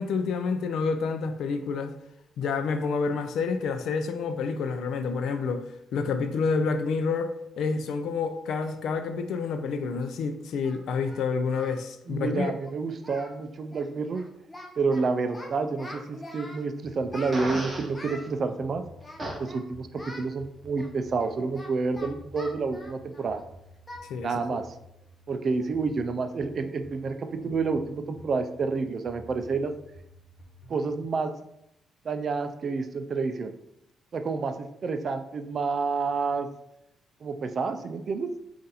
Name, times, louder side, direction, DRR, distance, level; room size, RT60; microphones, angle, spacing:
voice 1, 0.0-1.9 2.4-5.7 5.9-12.5 24.1-24.6, left 5 dB, 75° left, 0.4 m, -28 dB
Singing, 9.9-10.0 10.6-11.9 12.1-12.3 12.6-12.8 13.0-13.4 13.7-13.9 14.1-15.0 15.3-16.6 17.1-18.3 19.0-19.6 20.0-20.3 20.8-23.4 23.9-24.1 24.4-24.6 25.0-25.1 25.6-25.9, left 1 dB, 15° left, 0.6 m, -44 dB
voice 2, 12.1-14.2 14.8-18.8 19.4-23.4 24.2-24.7 25.3-29.7 30.7-31.4 32.0-33.5 34.1-36.5 37.2-38.3, right 4 dB, 45° right, 0.4 m, -29 dB
sound 1, 16.8-31.1, equal, 55° left, 1.0 m, -52 dB
Fart, 17.3-17.9 19.2-19.4, right 1 dB, 20° right, 0.9 m, -33 dB
3.9 x 2.5 x 4.1 m
cardioid pair, 115°, 0 cm